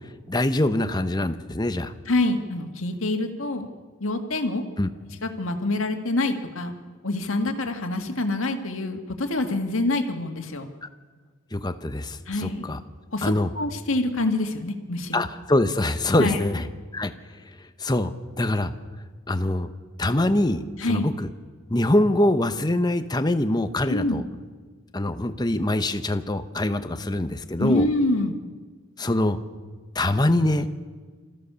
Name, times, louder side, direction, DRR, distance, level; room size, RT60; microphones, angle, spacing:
voice 1, 0.3-1.9 4.8-4.9 11.5-12.8 13.2-13.5 15.1-16.7 16.9-17.1 17.6-18.7 19.3-19.7 20.0-21.3 21.7-24.2 24.9-27.9 29.0-29.4 29.9-30.7, left 1 dB, 20° left, 9 dB, 0.8 m, -24 dB
voice 2, 2.1-3.7 4.0-4.6 5.2-6.7 7.0-10.7 12.3-12.7 13.1-15.3 16.2-16.4 20.8-21.1 23.9-24.2 27.6-28.4, left 2 dB, 70° left, 5 dB, 1.9 m, -26 dB
26.0 x 14.5 x 6.9 m, 1.5 s
head